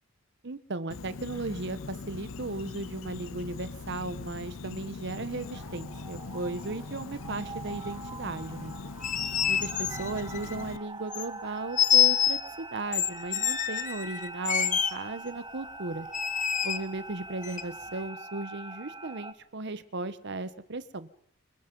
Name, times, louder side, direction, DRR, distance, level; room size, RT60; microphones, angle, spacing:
voice 1, 0.4-8.7 9.5-16.1 16.6-21.1, right 2 dB, 55° right, 13 dB, 1.0 m, -36 dB
Insect, 0.9-10.8, left 3 dB, 70° left, 0.8 m, -41 dB
sound 1, 5.0-19.3, right 3 dB, 20° right, 1.1 m, -43 dB
sound 2, 8.8-10.6 11.1-11.3 11.8-12.4 12.9-14.9 16.1-16.8 17.4-17.6, left 9 dB, 35° left, 1.1 m, -26 dB
27.0 x 22.0 x 5.3 m, 0.74 s
head